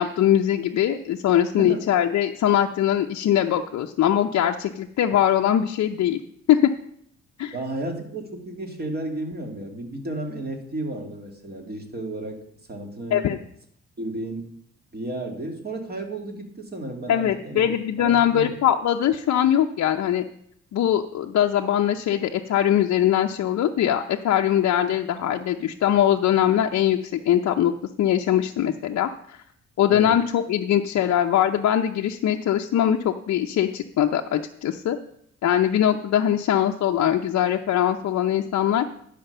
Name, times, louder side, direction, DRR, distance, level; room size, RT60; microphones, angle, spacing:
voice 1, 0.0-6.2 6.5-6.7 7.4-7.5 13.1-13.4 17.1-20.2 20.7-27.7 28.0-29.4 29.8-35.0 35.4-38.9, left 10 dB, 60° left, 3 dB, 0.6 m, -21 dB
voice 2, 1.6-1.9 7.5-13.2 14.0-14.5 14.9-17.7 18.0-18.5 29.9-30.2, right 2 dB, 30° right, 3 dB, 2.2 m, -33 dB
10.5 x 5.1 x 6.7 m, 0.70 s
cardioid pair, 90°, 30 cm